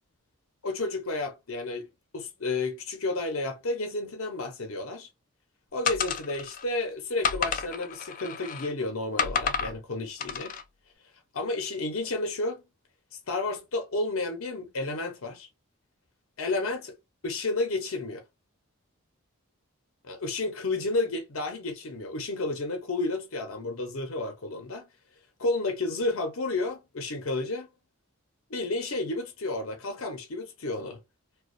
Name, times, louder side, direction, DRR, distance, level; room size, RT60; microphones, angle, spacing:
voice 1, 0.6-1.9 2.1-5.1 5.7-10.6 11.3-12.6 13.3-15.5 16.4-17.0 17.2-18.2 20.0-24.9 25.4-27.7 28.5-31.0, left 2 dB, 65° left, 0.7 m, -31 dB
sound 1, 5.9-6.6 7.2-8.7 9.2-9.7 10.2-10.6, left 6 dB, 40° left, 0.3 m, -30 dB
2.3 x 2.2 x 2.5 m
head